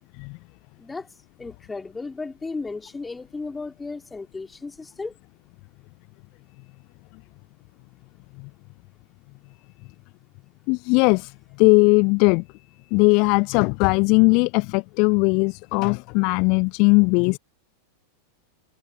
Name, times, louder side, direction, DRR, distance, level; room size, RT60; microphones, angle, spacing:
voice 1, 1.4-5.1, left 3 dB, 10° left, 4.2 m, -34 dB
voice 2, 10.7-11.3 11.6-12.4 12.9-17.4, left 32 dB, 45° left, 0.9 m, -18 dB
figure-of-eight pair, 90°, 0 cm